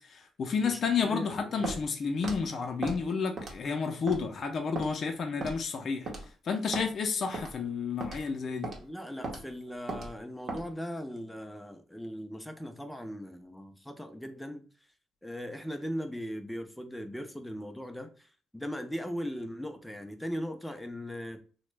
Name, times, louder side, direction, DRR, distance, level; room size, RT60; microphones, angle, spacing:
voice 1, 0.1-6.1 6.4-8.7, left 5 dB, 50° left, 0.5 m, -31 dB
voice 2, 0.6-1.7 8.8-14.6 15.2-21.4, equal, 5° left, 0.5 m, -39 dB
Walk footsteps, 1.6-1.8 2.2-2.4 2.8-3.0 3.4-3.7 4.1-4.2 4.7-4.9 5.4-5.6 6.1-6.3 6.7-6.9 7.3-7.5 8.0-8.2 8.6-8.8 9.2-9.4 9.9-10.1 10.5-10.6, right 2 dB, 55° right, 0.8 m, -36 dB
2.9 x 2.1 x 3.2 m
cardioid pair, 90°, 0 cm